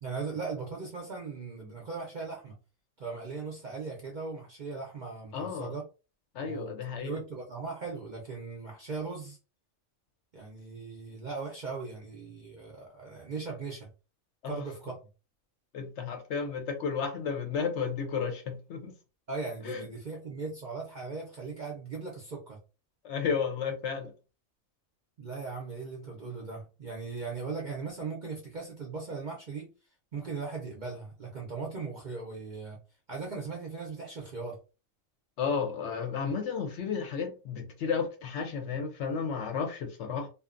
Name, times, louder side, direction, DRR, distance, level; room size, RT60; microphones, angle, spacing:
voice 1, 0.0-2.6 3.0-5.8 6.4-6.7 7.0-9.4 10.3-13.9 14.4-15.0 19.3-22.6 25.2-29.7 30.1-32.8 33.1-34.6, right 4 dB, 50° right, 0.5 m, -38 dB
voice 2, 5.3-5.7 6.3-7.1 14.4-14.5 15.7-18.9 19.6-19.8 23.0-24.1 35.4-40.3, left 6 dB, 65° left, 0.8 m, -32 dB
2.6 x 2.1 x 2.4 m
omnidirectional pair, 1.4 m